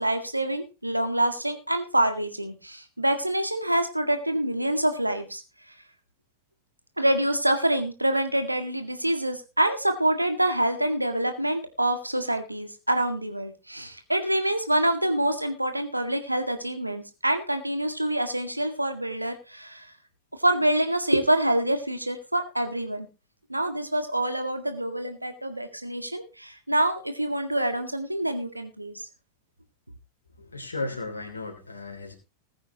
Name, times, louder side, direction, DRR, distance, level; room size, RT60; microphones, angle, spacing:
voice 1, 0.0-5.4 7.0-19.9 20.4-23.1 23.5-29.1, right 1 dB, 85° right, 7 dB, 2.0 m, -26 dB
voice 2, 30.4-32.1, left 2 dB, 75° left, 0 dB, 3.0 m, -35 dB
20.0 x 8.8 x 3.0 m, 0.30 s
figure-of-eight pair, 90°, 0 cm